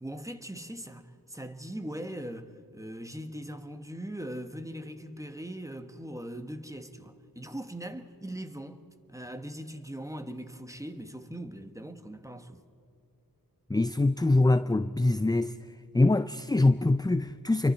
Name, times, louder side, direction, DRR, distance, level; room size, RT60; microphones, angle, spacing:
voice 1, 0.0-8.8 9.1-12.6, right 1 dB, 10° right, 1.3 m, -40 dB
voice 2, 13.7-15.6 15.9-17.7, left 2 dB, 10° left, 0.4 m, -24 dB
28.5 x 23.5 x 4.3 m
wide cardioid pair, 50°, 36 cm